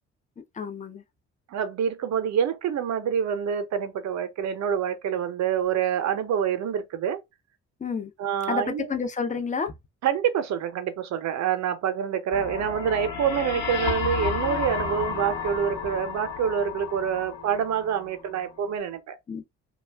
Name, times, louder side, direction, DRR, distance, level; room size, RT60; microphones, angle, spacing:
voice 1, 0.5-1.0 7.8-8.1 8.5-9.7 19.3-19.5, left 5 dB, 25° left, 0.6 m, -30 dB
voice 2, 1.5-7.2 8.2-8.9 10.0-19.2, right 8 dB, 65° right, 0.6 m, -26 dB
sound 1, 12.3-18.2, left 5 dB, 65° left, 1.0 m, -32 dB
2.3 x 2.2 x 3.3 m
cardioid pair, 90°, 30 cm